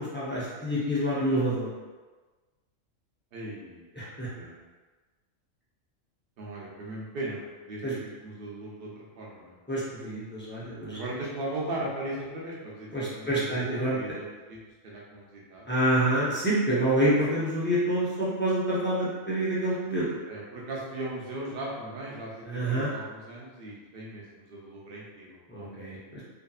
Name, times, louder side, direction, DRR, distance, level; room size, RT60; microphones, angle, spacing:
voice 1, 0.0-1.7 4.0-4.3 7.8-7.9 9.7-11.0 12.9-14.0 15.7-20.1 22.4-22.9 25.5-26.2, right 1 dB, 20° left, -10 dB, 0.3 m, -27 dB
voice 2, 3.3-4.0 4.3-4.6 6.4-7.4 7.6-9.6 10.9-14.6 14.8-15.7 20.3-25.4, right 1 dB, 55° right, -4 dB, 0.8 m, -38 dB
2.7 x 2.6 x 2.3 m, 1.3 s
omnidirectional pair, 1.3 m